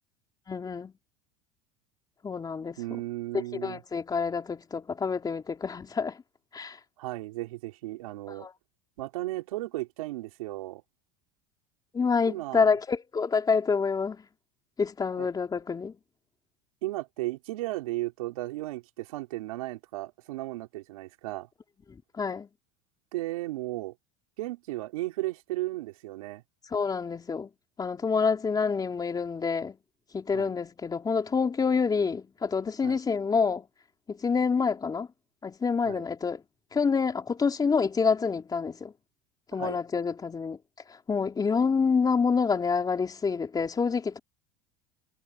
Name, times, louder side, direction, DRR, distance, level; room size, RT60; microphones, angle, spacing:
voice 1, 0.5-0.9 2.2-2.8 3.3-6.2 6.5-6.8 8.4-8.5 11.9-14.2 14.8-15.9 22.2-22.5 26.7-27.5 27.8-29.8 30.1-33.6 34.1-35.1 35.4-36.4 36.7-38.9 39.5-40.6 41.1-44.2, left 5 dB, 20° left, 3.4 m, -27 dB
voice 2, 2.8-3.8 7.0-8.5 9.0-10.8 12.3-12.8 15.2-15.3 16.8-21.5 23.1-23.9 24.4-26.4 30.3-30.5 32.8-33.0 35.9-36.0 39.5-39.8, right 18 dB, 85° right, 4.3 m, -35 dB
supercardioid pair, 105°, 18 cm